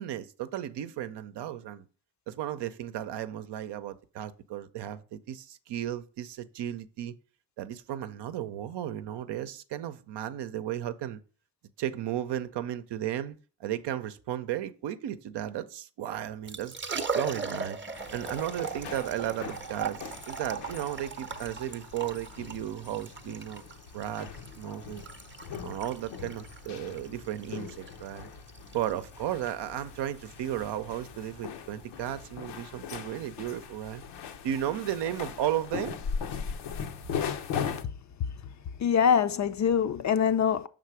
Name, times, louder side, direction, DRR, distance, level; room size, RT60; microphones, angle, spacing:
voice 1, 0.0-1.8 2.3-7.1 7.6-11.2 11.8-16.8 17.1-17.8 18.1-23.6 23.9-24.3 24.6-25.0 25.6-28.3 28.7-34.0 34.4-36.0, right 11 dB, 70° right, 0.7 m, -34 dB
Liquid, 16.3-33.6, right 5 dB, 25° right, 0.7 m, -40 dB
sound 1, 17.9-37.8, left 7 dB, 70° left, 0.8 m, -40 dB
voice 2, 38.8-40.7, left 7 dB, 40° left, 0.5 m, -24 dB
5.8 x 3.8 x 4.8 m
supercardioid pair, 50°, 43 cm